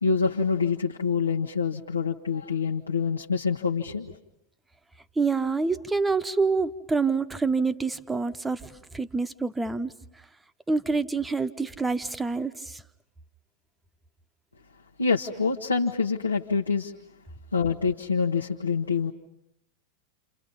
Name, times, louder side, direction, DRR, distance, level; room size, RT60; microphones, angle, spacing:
voice 1, 0.0-4.2 15.0-16.9 17.5-19.1, left 5 dB, 80° left, 0 dB, 1.1 m, -26 dB
voice 2, 5.2-9.9 10.7-12.8, right 4 dB, 10° right, 11 dB, 1.0 m, -27 dB
29.0 x 29.0 x 5.4 m, 0.81 s
figure-of-eight pair, 90°, 0 cm